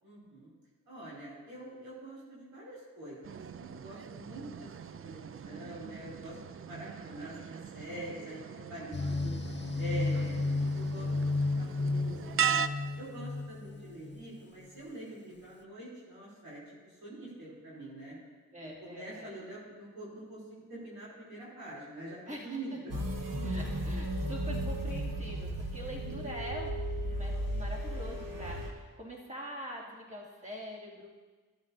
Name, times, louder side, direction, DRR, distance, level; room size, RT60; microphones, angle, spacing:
voice 1, 0.0-0.5 0.8-9.4 9.7-12.6 13.0-16.6 16.8-18.1 18.6-23.0 23.4-23.5, right 1 dB, 90° right, -7 dB, 3.4 m, -45 dB
sound 1, 3.2-12.7, right 7 dB, 40° right, 0.4 m, -38 dB
sound 2, 8.9-14.4, left 3 dB, 30° left, 0.6 m, -33 dB
voice 2, 18.5-19.3 22.3-22.6 23.4-31.1, equal, 20° right, -5 dB, 2.5 m, -44 dB
sound 3, 22.9-28.7, equal, 65° right, 1.5 m, -35 dB
12.0 x 9.9 x 2.7 m, 1.4 s
cardioid pair, 45°, 35 cm